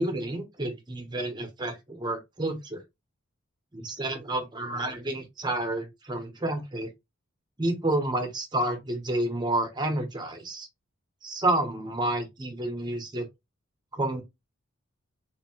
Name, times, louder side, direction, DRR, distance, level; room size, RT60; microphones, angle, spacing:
voice 1, 0.0-2.8 3.7-6.9 7.6-10.7 11.2-13.3 13.9-14.2, right 1 dB, 20° right, 0.8 m, -30 dB
3.7 x 2.8 x 2.8 m
head